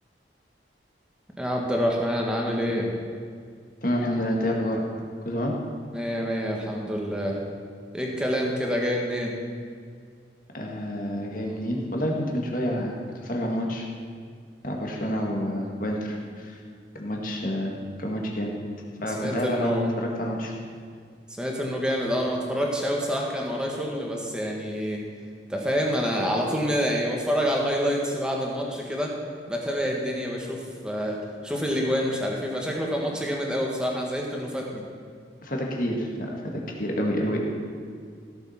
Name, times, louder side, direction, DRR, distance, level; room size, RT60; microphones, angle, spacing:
voice 1, 1.4-2.9 5.9-7.4 7.9-9.4 19.0-19.9 21.3-25.0 25.5-29.2 29.5-34.8, equal, 5° right, -1 dB, 1.7 m, -27 dB
voice 2, 3.8-4.8 5.3-5.5 10.5-13.0 13.2-13.9 14.6-16.6 16.9-18.5 19.0-20.5 35.4-37.4, equal, 50° left, 0 dB, 2.0 m, -28 dB
16.0 x 7.4 x 5.8 m, 2.1 s
head